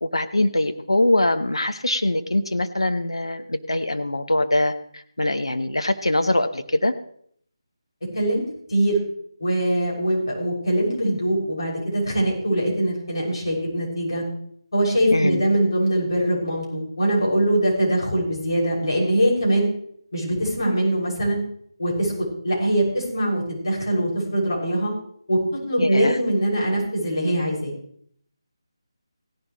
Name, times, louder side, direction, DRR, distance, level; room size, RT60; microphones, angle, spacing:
voice 1, 0.0-6.9 15.1-15.4 25.8-26.2, left 1 dB, 80° left, 9 dB, 1.1 m, -23 dB
voice 2, 8.1-8.4 8.7-9.0 9.4-14.2 14.7-19.7 20.1-21.4 21.8-22.1 22.4-24.9 25.3-27.7, right 1 dB, 60° left, -4 dB, 6.4 m, -22 dB
16.5 x 11.0 x 3.2 m, 0.63 s
figure-of-eight pair, 155°, 3 cm